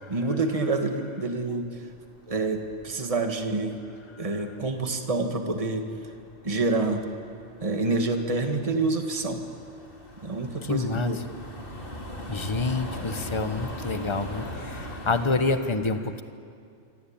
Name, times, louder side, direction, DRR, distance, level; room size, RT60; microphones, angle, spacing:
voice 1, 0.1-1.7 2.3-3.7 4.2-5.9 6.4-7.0 7.6-9.4 10.2-11.2, right 3 dB, 25° right, 4 dB, 1.9 m, -27 dB
sound 1, 1.8-4.0 4.3-15.3, equal, 45° left, 3.7 m, -40 dB
voice 2, 10.6-11.2 12.3-16.2, left 3 dB, 25° left, 9 dB, 1.2 m, -28 dB
26.0 x 25.5 x 8.8 m, 2.4 s
omnidirectional pair, 1.3 m